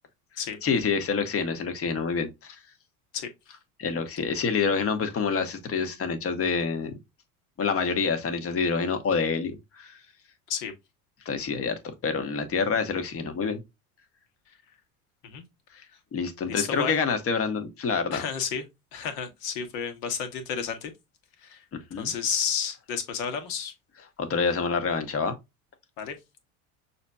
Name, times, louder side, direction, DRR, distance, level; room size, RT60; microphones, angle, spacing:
voice 1, 0.6-2.6 3.8-6.9 7.6-10.0 11.2-11.7 12.0-13.6 16.1-18.2 21.7-22.1 24.2-25.3, left 5 dB, 30° left, 1.2 m, -27 dB
voice 2, 16.5-17.0 18.1-18.7 18.9-20.9 21.4-21.6 22.0-23.7 26.0-26.2, left 7 dB, 60° left, 1.4 m, -31 dB
6.3 x 2.7 x 2.2 m
hypercardioid pair, 75°, 44 cm